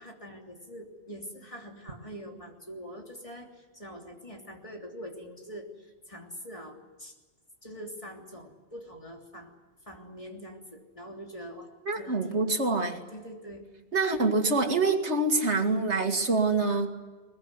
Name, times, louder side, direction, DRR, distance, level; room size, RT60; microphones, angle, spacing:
voice 1, 0.0-7.2 7.6-9.5 9.8-11.7 12.0-13.6, equal, 30° left, 1 dB, 3.4 m, -44 dB
voice 2, 11.9-13.0 13.9-16.9, right 3 dB, 85° right, 6 dB, 2.5 m, -25 dB
21.5 x 21.0 x 9.8 m, 1.2 s
omnidirectional pair, 1.1 m